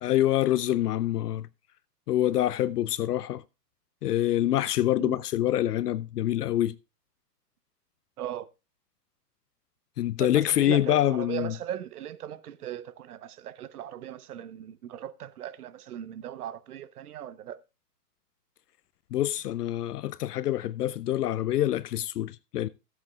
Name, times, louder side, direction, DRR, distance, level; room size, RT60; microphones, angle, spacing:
voice 1, 0.0-1.5 2.1-3.4 4.0-6.8 10.0-11.5 19.1-22.7, left 13 dB, 70° left, 0.6 m, -26 dB
voice 2, 8.2-8.5 10.2-17.6, right 11 dB, 65° right, 1.0 m, -38 dB
15.5 x 8.2 x 2.3 m
hypercardioid pair, 155°, 49 cm